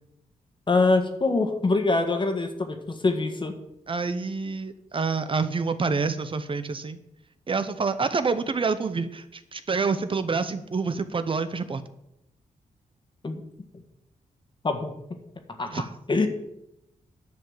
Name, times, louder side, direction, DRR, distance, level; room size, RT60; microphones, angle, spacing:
voice 1, 0.7-3.5 13.2-13.4 14.6-14.9 15.6-16.3, left 3 dB, 35° left, 6 dB, 1.6 m, -24 dB
voice 2, 3.9-7.0 7.5-11.8 15.7-15.9, right 4 dB, 40° right, 11 dB, 0.7 m, -27 dB
10.5 x 5.8 x 7.2 m, 0.84 s
cardioid pair, 85°, 14 cm